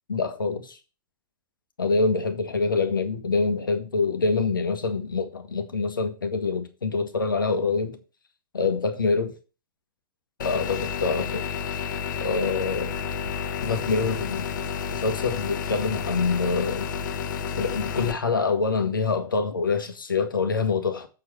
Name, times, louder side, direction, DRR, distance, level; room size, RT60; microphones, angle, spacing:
voice 1, 0.1-0.8 1.8-8.0 8.5-9.3 10.4-11.5 12.2-12.9 13.6-16.9 17.6-21.1, left 4 dB, 85° left, 1.5 m, -25 dB
sound 1, 10.4-18.1, left 7 dB, 65° left, 1.0 m, -31 dB
7.5 x 5.0 x 6.6 m
hypercardioid pair, 100°, 11 cm